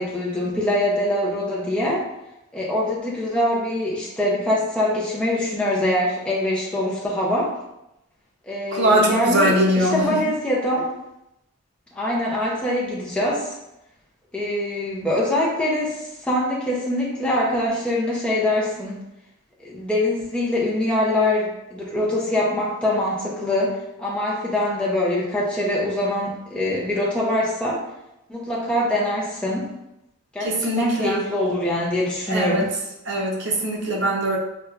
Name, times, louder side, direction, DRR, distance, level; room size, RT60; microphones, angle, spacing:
voice 1, 0.0-2.1 2.5-7.5 8.4-10.9 11.9-13.6 14.3-19.0 19.6-27.8 28.3-29.7 30.3-32.7, left 1 dB, 5° left, -6 dB, 0.5 m, -23 dB
voice 2, 8.7-10.2 30.4-31.2 32.3-32.7 33.1-34.4, right 1 dB, 55° right, -2 dB, 0.7 m, -21 dB
4.3 x 2.2 x 2.4 m, 0.87 s
head